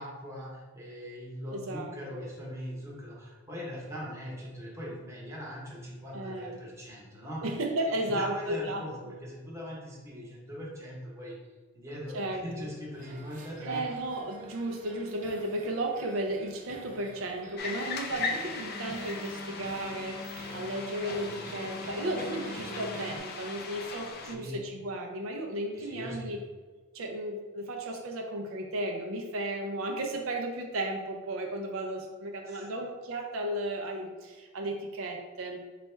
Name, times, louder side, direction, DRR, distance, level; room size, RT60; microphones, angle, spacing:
voice 1, 0.0-7.5 7.9-11.4 11.7-14.0 24.2-24.6 25.7-26.3 32.5-32.7, equal, 15° right, -4 dB, 0.9 m, -41 dB
voice 2, 1.5-1.9 6.1-6.6 7.4-8.8 12.1-12.7 13.6-26.4 26.9-35.7, right 1 dB, 70° right, 2 dB, 0.5 m, -34 dB
sound 1, 12.9-23.2, right 1 dB, 40° right, 0.7 m, -48 dB
sound 2, 17.6-24.4, left 4 dB, 45° left, 0.4 m, -39 dB
Wind instrument woodwind instrument, 18.5-23.3, left 1 dB, 70° left, 0.8 m, -44 dB
4.1 x 2.3 x 4.2 m, 1.4 s
head